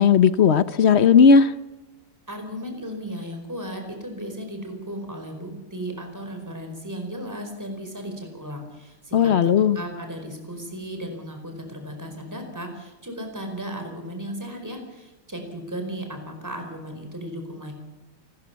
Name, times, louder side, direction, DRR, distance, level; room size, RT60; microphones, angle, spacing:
voice 1, 0.0-1.5 9.1-9.8, left 6 dB, 50° left, 0.8 m, -16 dB
voice 2, 2.3-17.7, equal, 10° right, 4.7 m, -35 dB
28.5 x 14.0 x 7.0 m
omnidirectional pair, 2.0 m